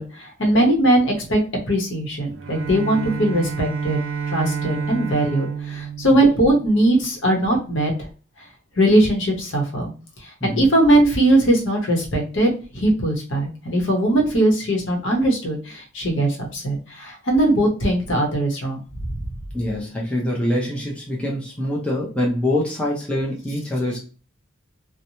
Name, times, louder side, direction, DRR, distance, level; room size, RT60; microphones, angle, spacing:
voice 1, 0.0-1.4 1.7-4.0 4.3-7.9 8.8-9.9 10.4-18.8, right 1 dB, 65° left, 0 dB, 0.9 m, -20 dB
Bowed string instrument, 2.3-6.9, right 6 dB, 70° right, 0.4 m, -29 dB
voice 2, 19.5-24.0, left 1 dB, 5° left, -3 dB, 0.5 m, -24 dB
2.9 x 2.1 x 2.7 m, 0.36 s
head